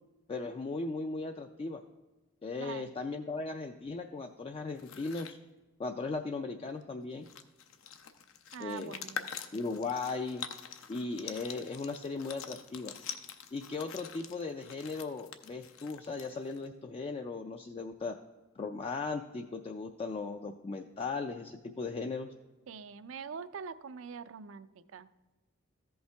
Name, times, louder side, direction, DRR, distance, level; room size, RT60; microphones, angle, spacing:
voice 1, 0.3-1.8 2.4-5.4 5.8-7.3 8.6-8.9 9.5-10.5 10.9-12.9 13.5-18.1 18.6-22.3, left 3 dB, 30° left, 5 dB, 0.3 m, -37 dB
voice 2, 2.6-2.9 8.5-9.3 22.7-25.2, right 6 dB, 70° right, 15 dB, 0.4 m, -44 dB
sound 1, 4.7-5.4 6.8-6.9 7.1-16.7, left 7 dB, 75° left, 0.6 m, -45 dB
14.0 x 5.5 x 3.4 m, 1.2 s
head